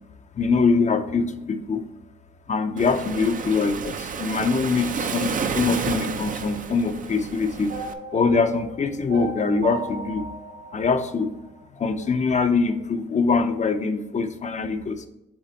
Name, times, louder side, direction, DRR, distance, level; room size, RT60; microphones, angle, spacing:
voice 1, 0.3-1.8 2.5-7.7 8.1-10.3 10.7-11.3 11.8-15.0, left 4 dB, 35° left, 8 dB, 0.6 m, -23 dB
Waves surf, 2.8-7.9, right 6 dB, 45° right, 0.5 m, -31 dB
sound 1, 7.7-11.9, right 2 dB, 90° right, 2.1 m, -37 dB
7.1 x 3.4 x 4.1 m, 0.87 s
cardioid pair, 90°, 20 cm